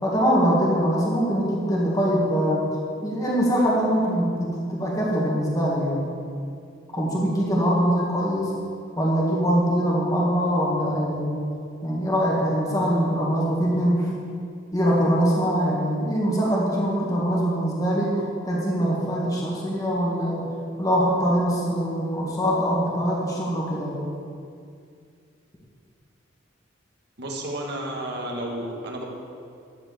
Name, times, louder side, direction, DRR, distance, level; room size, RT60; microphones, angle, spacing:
voice 1, 0.0-2.6 3.0-6.1 6.9-8.5 9.0-11.5 11.8-14.1 14.7-20.5 20.8-24.1, equal, 20° left, -5 dB, 2.0 m, -23 dB
voice 2, 27.2-29.0, right 1 dB, 60° right, -1 dB, 1.8 m, -31 dB
13.0 x 4.9 x 7.9 m, 2.3 s
head